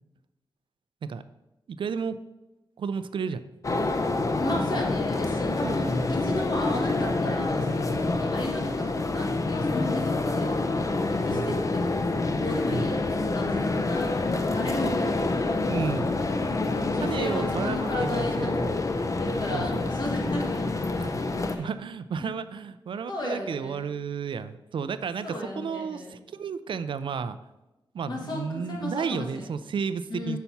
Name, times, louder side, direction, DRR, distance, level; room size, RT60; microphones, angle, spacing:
voice 1, 1.8-2.2 2.8-3.4 5.6-5.8 8.1-8.2 11.3-11.5 12.7-12.9 15.7-16.1 17.0-18.7 19.5-19.9 21.0-27.4 27.9-30.4, right 6 dB, 70° right, 12 dB, 0.4 m, -32 dB
sound 1, 3.6-21.6, left 3 dB, 40° left, 0.5 m, -27 dB
voice 2, 4.4-10.6 11.1-13.0 13.3-15.2 16.8-18.8 19.2-20.7 21.4-21.6 22.2-22.4 23.1-23.8 25.2-26.2 28.1-29.4 30.1-30.4, left 1 dB, 55° left, -1 dB, 1.8 m, -34 dB
5.7 x 4.1 x 5.6 m, 1.0 s
cardioid pair, 80°, 9 cm